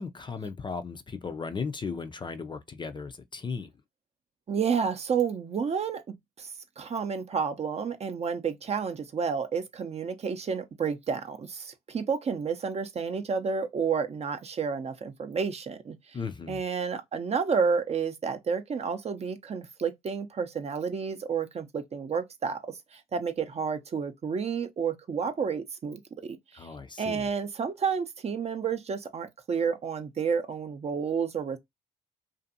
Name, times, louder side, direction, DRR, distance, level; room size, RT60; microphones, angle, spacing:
voice 1, 0.0-3.7 16.1-16.6 26.5-27.3, left 5 dB, 25° left, 0.4 m, -36 dB
voice 2, 4.5-6.0 6.4-6.5 6.8-16.0 16.5-26.7 27.0-31.6, right 6 dB, 35° right, 0.5 m, -30 dB
2.5 x 2.5 x 2.5 m
supercardioid pair, 70°, 18 cm